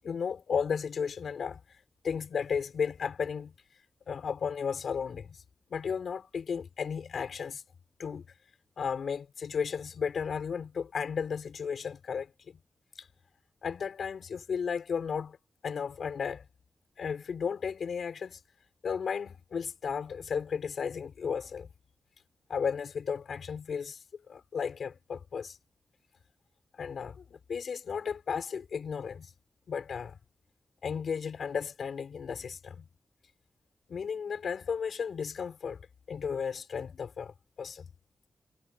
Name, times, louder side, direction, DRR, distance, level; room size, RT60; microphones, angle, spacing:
voice 1, 0.0-1.6 2.0-3.5 4.1-5.4 5.7-7.6 8.0-8.3 8.8-12.6 13.0-13.1 13.6-15.4 15.6-16.5 17.0-18.4 18.8-21.7 22.5-24.0 24.3-25.6 26.8-29.3 29.7-30.2 30.8-32.9 33.9-35.8 36.1-37.9, left 6 dB, 80° left, 4.1 m, -34 dB
wide cardioid pair, 115°, 0 cm